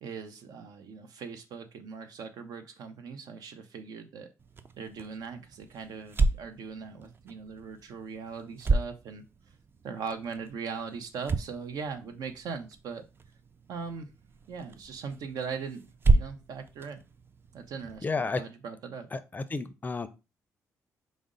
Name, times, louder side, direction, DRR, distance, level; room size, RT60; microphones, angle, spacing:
voice 1, 0.0-4.3 4.8-9.2 9.8-13.1 13.7-14.1 14.5-17.0 17.5-19.1, right 5 dB, 75° right, 8 dB, 0.6 m, -40 dB
sound 1, 4.4-18.0, right 3 dB, 35° right, 0.4 m, -33 dB
voice 2, 18.0-18.4 19.1-20.1, left 4 dB, 25° left, 12 dB, 0.4 m, -31 dB
4.9 x 2.1 x 3.7 m, 0.29 s
cardioid pair, 80°, 7 cm